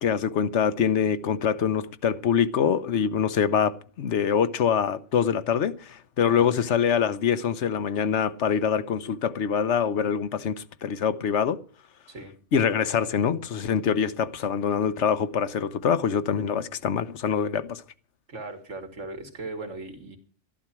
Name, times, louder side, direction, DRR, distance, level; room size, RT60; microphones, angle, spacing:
voice 1, 0.0-11.6 12.5-17.8, left 7 dB, 75° left, 1.1 m, -24 dB
voice 2, 6.2-6.6 12.1-12.3 18.3-20.2, right 2 dB, 85° right, 2.6 m, -38 dB
13.0 x 11.5 x 6.0 m
omnidirectional pair, 1.2 m